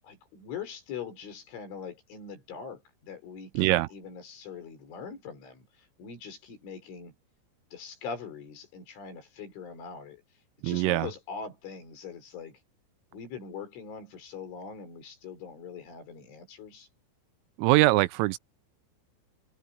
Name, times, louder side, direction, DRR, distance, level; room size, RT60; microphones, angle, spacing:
voice 1, 0.0-7.1 7.7-10.2 10.6-12.6 13.1-16.9, left 6 dB, 65° left, 7.6 m, -42 dB
voice 2, 3.6-3.9 10.6-11.1 17.6-18.4, right 19 dB, 85° right, 3.2 m, -23 dB
omnidirectional pair, 5.9 m